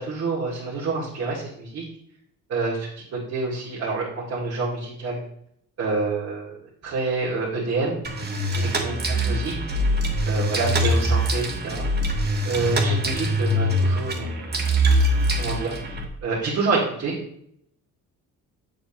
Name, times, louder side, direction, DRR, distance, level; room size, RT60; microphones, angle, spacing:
voice 1, 0.0-1.8 2.5-5.2 5.8-6.6 6.8-8.0 8.6-9.5 10.3-11.9 12.4-14.5 15.4-15.7 16.2-17.1, right 3 dB, 45° right, -7 dB, 2.3 m, -27 dB
sound 1, 8.0-16.0, equal, 30° right, 1.5 m, -23 dB
8.5 x 7.7 x 3.0 m, 0.70 s
cardioid pair, 140°, 34 cm